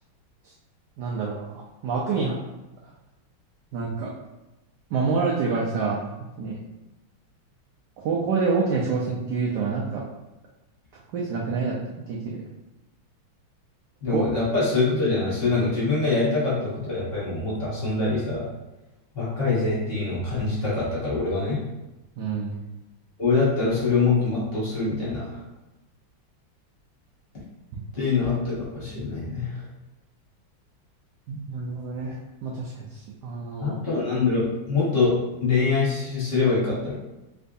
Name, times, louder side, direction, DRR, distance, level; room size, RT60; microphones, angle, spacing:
voice 1, 1.0-2.4 3.7-4.1 4.9-6.1 6.4-6.6 8.0-10.0 11.1-12.4 14.1-14.2 22.2-22.5 31.3-32.2 32.4-33.8, right 4 dB, 75° right, -3 dB, 0.9 m, -27 dB
voice 2, 14.0-18.5 19.1-21.6 23.2-25.4 27.9-29.6 33.6-36.9, left 3 dB, 35° left, -8 dB, 1.1 m, -24 dB
3.5 x 3.0 x 2.6 m, 1.0 s
omnidirectional pair, 2.3 m